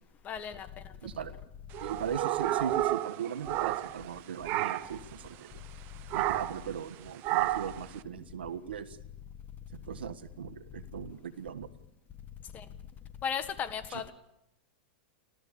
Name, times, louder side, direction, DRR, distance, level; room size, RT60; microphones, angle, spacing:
voice 1, 0.3-0.7 12.5-12.6 13.2-14.1, left 7 dB, 30° left, 1.7 m, -35 dB
voice 2, 1.0-1.3 1.8-5.6 6.1-9.0 9.9-11.7 13.9-14.0, right 8 dB, 85° right, 1.4 m, -38 dB
sound 1, 1.7-4.1 4.4-5.0 6.1-6.7 7.2-7.8, right 15 dB, 45° right, 1.1 m, -31 dB
30.0 x 13.0 x 8.6 m
hypercardioid pair, 120°, 6 cm